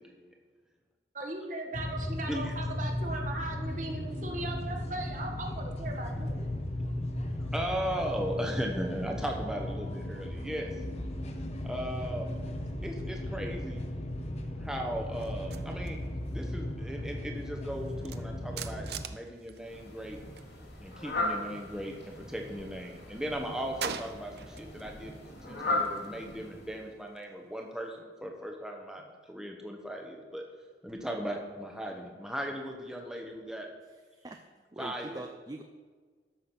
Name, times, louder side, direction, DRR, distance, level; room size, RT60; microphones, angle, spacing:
voice 1, 1.1-6.5, right 2 dB, 45° right, 2 dB, 1.6 m, -38 dB
sound 1, 1.7-19.0, left 1 dB, 35° left, 0.9 m, -36 dB
voice 2, 7.4-10.7 11.6-12.3 12.8-13.8 14.6-16.0 16.3-20.2 20.8-30.4 30.8-33.7 34.8-35.2, equal, 5° right, 1 dB, 0.9 m, -37 dB
sound 2, 15.2-20.5 20.8-22.4 22.8-24.9 25.2-28.0, right 6 dB, 65° right, 0.6 m, -45 dB
Fowl, 19.6-26.9, left 2 dB, 75° left, 2.9 m, -37 dB
voice 3, 33.9-34.5 34.7-35.6, right 2 dB, 20° right, 5 dB, 0.5 m, -44 dB
13.0 x 6.0 x 6.0 m, 1.5 s
head